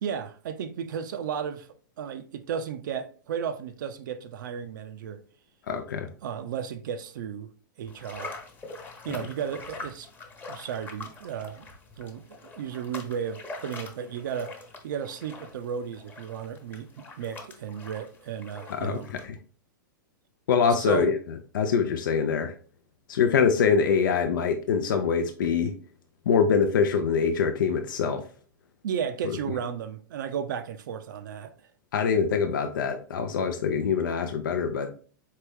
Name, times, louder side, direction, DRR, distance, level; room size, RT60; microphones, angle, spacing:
voice 1, 0.0-1.7 2.0-5.2 6.2-7.5 7.8-8.4 9.0-10.1 10.5-11.7 12.0-19.1 20.9-21.2 28.8-31.5, right 7 dB, 65° right, 0.4 m, -34 dB
voice 2, 5.7-6.1 18.7-19.4 20.5-22.5 23.1-25.7 26.3-28.3 29.2-29.4 31.9-34.9, left 6 dB, 70° left, 0.5 m, -24 dB
sound 1, 7.9-19.3, left 3 dB, 15° left, 1.0 m, -44 dB
4.2 x 3.2 x 3.4 m
hypercardioid pair, 110°, 11 cm